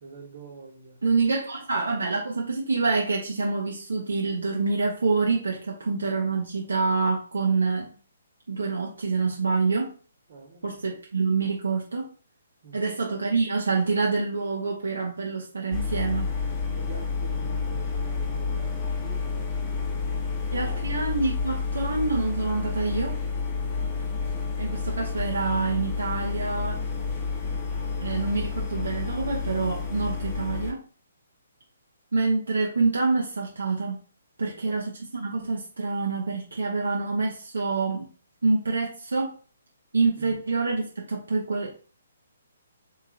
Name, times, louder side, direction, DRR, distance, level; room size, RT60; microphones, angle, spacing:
voice 1, 0.0-1.0 10.3-10.8 12.6-12.9 16.7-20.9 23.6-23.9 34.4-34.8 40.2-40.4, right 5 dB, 45° right, 1 dB, 1.1 m, -46 dB
voice 2, 1.0-7.9 8.5-9.9 10.6-12.1 12.7-16.3 20.5-23.2 24.6-26.8 28.0-30.8 32.1-34.0 34.4-38.1 38.4-39.3 39.9-41.7, right 4 dB, 65° right, -1 dB, 0.7 m, -26 dB
sound 1, 15.7-30.7, left 5 dB, 25° left, 0.7 m, -30 dB
3.6 x 3.1 x 2.4 m, 0.39 s
figure-of-eight pair, 130°, 0 cm